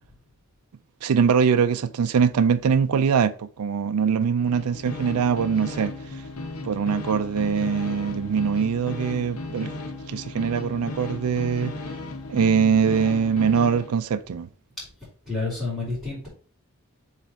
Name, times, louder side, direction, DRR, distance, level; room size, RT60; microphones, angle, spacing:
voice 1, 1.0-5.9 6.6-9.7 10.1-11.7 12.3-14.5, right 6 dB, 80° right, 0.4 m, -22 dB
sound 1, 4.4-13.9, left 2 dB, 80° left, 0.9 m, -35 dB
voice 2, 15.3-16.3, left 3 dB, ahead, 3.5 m, -29 dB
7.5 x 3.2 x 4.4 m
head